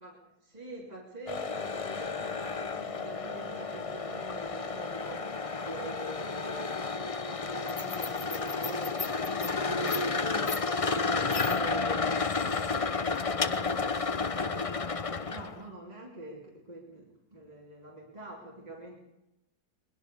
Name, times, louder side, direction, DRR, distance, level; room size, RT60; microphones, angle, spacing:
voice 1, 0.0-10.6 10.9-19.0, right 2 dB, 20° right, -4 dB, 3.1 m, -45 dB
sound 1, 1.3-15.6, left 4 dB, 60° left, 0.3 m, -31 dB
21.5 x 21.0 x 6.9 m, 0.94 s
omnidirectional pair, 1.9 m